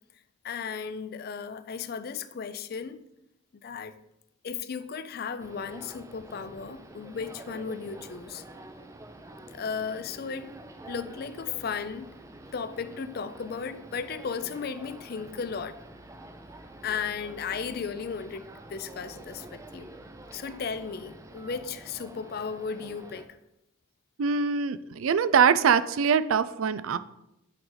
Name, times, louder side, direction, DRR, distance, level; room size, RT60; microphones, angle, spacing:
voice 1, 0.4-3.0 3.6-3.9 4.4-8.4 9.5-10.6 10.9-12.2 12.5-15.8 16.8-19.9 20.3-23.3, left 6 dB, 45° left, 12 dB, 0.4 m, -35 dB
sound 1, 5.4-23.3, right 1 dB, 15° right, 0.4 m, -47 dB
voice 2, 24.2-27.0, right 6 dB, 80° right, 14 dB, 0.4 m, -23 dB
8.7 x 4.8 x 3.9 m, 0.86 s
head